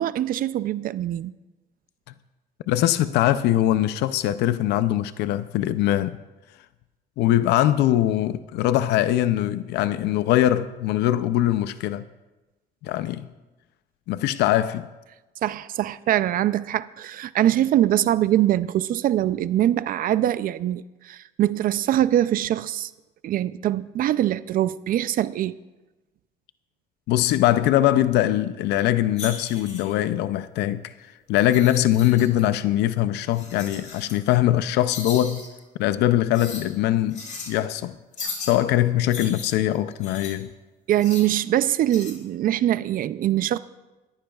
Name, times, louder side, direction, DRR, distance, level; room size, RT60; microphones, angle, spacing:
voice 1, 0.0-1.3 15.4-22.9 23.2-25.6 40.9-43.6, right 12 dB, 55° right, 0.4 m, -23 dB
voice 2, 2.7-6.2 7.2-12.0 12.8-13.3 14.1-14.9 27.1-30.9 31.3-35.4 35.8-38.0 38.4-40.5, left 13 dB, 85° left, 0.5 m, -22 dB
sound 1, 29.2-29.9 31.4-32.4 33.3-34.2 34.9-35.5 36.3-36.7 37.1-37.5 38.2-38.6 39.1-40.3 41.0-41.4 41.9-42.1, left 4 dB, 45° left, 3.8 m, -37 dB
20.5 x 14.5 x 2.4 m
cardioid pair, 110°, 17 cm